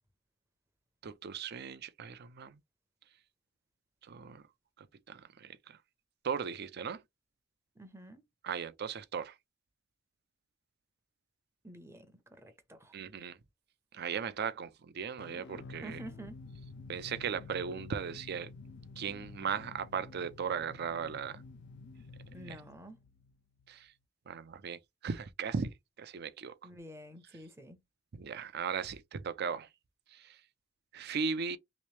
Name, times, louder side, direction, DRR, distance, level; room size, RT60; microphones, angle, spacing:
voice 1, 1.0-2.6 4.1-4.4 4.8-5.8 6.2-7.0 8.4-9.3 12.9-13.4 13.9-16.0 16.9-18.5 19.0-21.4 23.7-23.9 24.3-25.7 26.0-26.5 28.1-29.7 30.1-30.4 30.9-31.6, right 6 dB, 55° right, 0.5 m, -37 dB
voice 2, 7.8-8.2 11.6-13.0 15.8-16.4 22.3-23.0 26.6-27.8, right 1 dB, 15° right, 0.6 m, -49 dB
sound 1, 15.2-23.9, left 3 dB, 60° left, 0.3 m, -50 dB
3.1 x 3.0 x 3.1 m
head